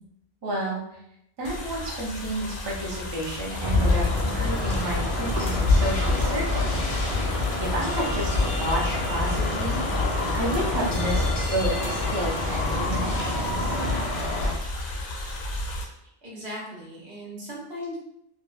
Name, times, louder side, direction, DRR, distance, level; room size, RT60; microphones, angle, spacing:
voice 1, 0.4-0.8 1.4-6.6 7.2-9.8 10.3-11.3 11.5-13.7, right 1 dB, 35° right, -4 dB, 0.5 m, -31 dB
sound 1, 1.4-15.8, left 1 dB, 60° left, 0.7 m, -35 dB
sound 2, 3.0-14.5, left 2 dB, 90° left, 0.9 m, -33 dB
sound 3, 3.6-14.0, left 2 dB, 60° right, 0.9 m, -26 dB
voice 2, 16.2-18.0, equal, 85° right, -5 dB, 1.2 m, -37 dB
2.6 x 2.1 x 2.3 m, 0.79 s
omnidirectional pair, 1.0 m